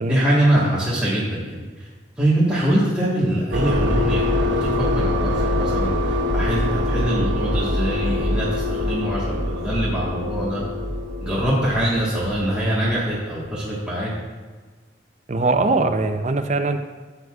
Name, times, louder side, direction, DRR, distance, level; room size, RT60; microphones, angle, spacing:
voice 1, 0.1-1.9 2.2-5.9 6.3-10.6 11.2-14.1, right 1 dB, 5° right, -9 dB, 1.4 m, -23 dB
sound 1, 3.5-13.0, left 1 dB, 80° right, 1.1 m, -24 dB
voice 2, 15.3-16.8, right 3 dB, 40° right, 8 dB, 0.5 m, -21 dB
13.0 x 7.9 x 2.4 m, 1.4 s
head